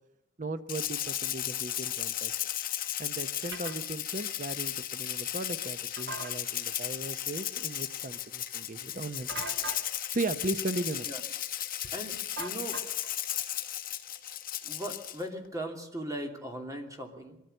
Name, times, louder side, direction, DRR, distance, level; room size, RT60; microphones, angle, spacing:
voice 1, 0.4-2.3 3.0-9.4 10.1-11.1, right 2 dB, 45° right, 10 dB, 0.9 m, -37 dB
Rattle (instrument), 0.7-15.2, left 12 dB, 50° left, 1.4 m, -35 dB
sound 1, 3.5-3.8 6.0-6.3 9.3-9.9 12.4-13.1, right 4 dB, 70° right, 1.9 m, -40 dB
voice 2, 11.9-12.8 14.6-17.4, right 1 dB, 20° right, 3 dB, 2.8 m, -38 dB
23.5 x 14.0 x 7.9 m, 0.88 s
head